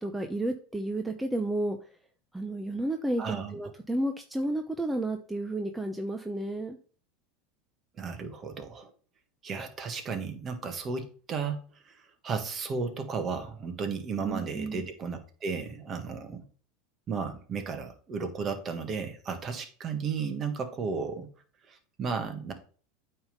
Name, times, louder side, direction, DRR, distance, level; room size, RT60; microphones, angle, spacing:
voice 1, 0.0-1.8 2.3-6.8 14.2-14.9, right 1 dB, 10° right, 5 dB, 0.8 m, -32 dB
voice 2, 3.2-3.6 8.0-8.9 9.4-11.6 11.8-16.4 17.1-21.3 21.7-22.5, right 5 dB, 35° right, 7 dB, 1.6 m, -34 dB
8.8 x 3.6 x 5.3 m, 0.41 s
hypercardioid pair, 95°, 0 cm